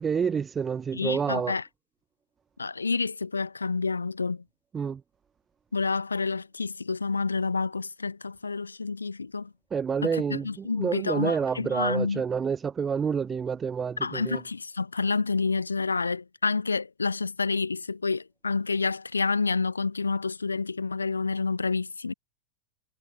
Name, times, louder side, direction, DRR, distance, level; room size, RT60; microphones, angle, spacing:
voice 1, 0.0-1.6 4.7-5.0 9.7-14.4, right 6 dB, 20° right, 0.8 m, -28 dB
voice 2, 0.9-1.6 2.6-4.4 5.7-9.5 10.0-12.2 14.0-22.1, left 4 dB, 75° left, 0.5 m, -29 dB
figure-of-eight pair, 90°, 0 cm